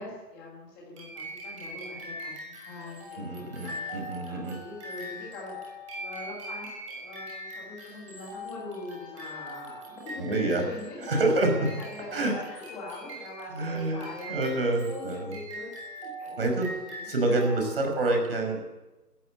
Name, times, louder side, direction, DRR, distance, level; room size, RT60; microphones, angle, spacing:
voice 1, 0.0-17.1, left 3 dB, 5° left, -3 dB, 1.5 m, -42 dB
sound 1, 1.0-18.0, equal, 20° right, 6.6 m, -41 dB
voice 2, 3.2-4.6 10.2-10.6 11.1-11.5 12.1-12.3 13.5-14.0 14.3-15.3 16.4-16.7 17.1-18.6, right 2 dB, 35° right, 3 dB, 5.9 m, -27 dB
19.5 x 14.5 x 9.0 m, 1.1 s
figure-of-eight pair, 170°, 48 cm